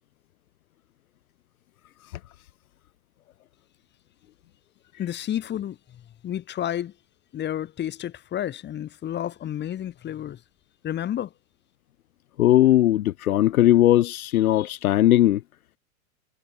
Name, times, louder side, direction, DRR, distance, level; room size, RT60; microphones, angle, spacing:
voice 1, 5.0-6.9 7.3-10.4 10.8-11.3, left 11 dB, 25° left, 5.5 m, -31 dB
voice 2, 12.4-15.4, left 13 dB, 80° left, 1.3 m, -18 dB
hypercardioid pair, 140°, 42 cm